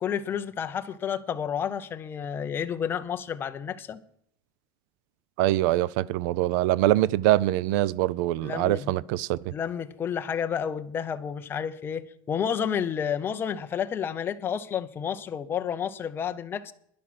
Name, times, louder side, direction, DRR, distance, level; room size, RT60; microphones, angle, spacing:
voice 1, 0.0-4.0 8.4-8.9 9.5-16.7, left 8 dB, 20° left, 0.6 m, -30 dB
voice 2, 5.4-9.5, right 15 dB, 65° right, 0.4 m, -24 dB
10.5 x 10.5 x 5.9 m
cardioid pair, 170°, 11 cm